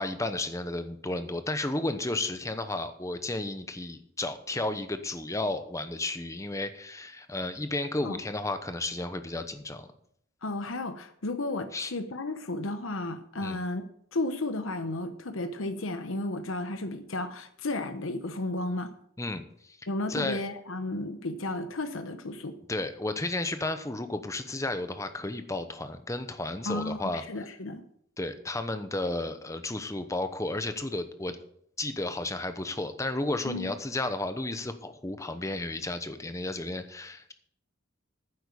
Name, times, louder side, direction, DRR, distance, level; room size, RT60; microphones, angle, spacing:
voice 1, 0.0-9.9 11.7-11.9 13.4-13.6 19.2-19.8 20.1-20.4 22.7-27.2 28.2-31.4 31.8-37.3, left 2 dB, 15° left, 9 dB, 0.9 m, -33 dB
voice 2, 10.4-13.8 14.1-18.9 19.9-22.6 26.7-27.8 33.4-33.7, left 2 dB, 85° left, 9 dB, 1.0 m, -33 dB
9.8 x 7.9 x 7.0 m, 0.67 s
head